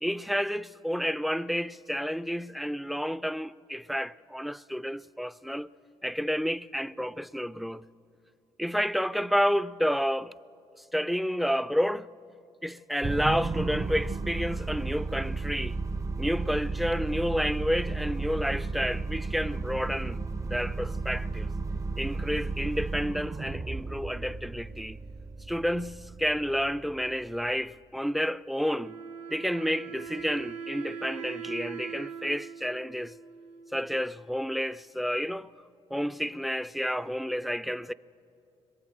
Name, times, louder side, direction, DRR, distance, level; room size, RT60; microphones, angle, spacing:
voice 1, 0.0-5.7 6.0-7.9 8.6-10.3 10.9-12.1 12.6-15.8 16.2-21.5 22.0-25.0 25.5-29.0 29.3-33.1 33.7-35.5 35.9-37.9, equal, ahead, 0.5 m, -30 dB
sound 1, 13.0-27.5, right 3 dB, 25° right, 0.8 m, -34 dB
Wind instrument woodwind instrument, 28.7-34.2, right 6 dB, 60° right, 1.8 m, -41 dB
26.0 x 22.0 x 8.0 m
cardioid pair, 95°, 12 cm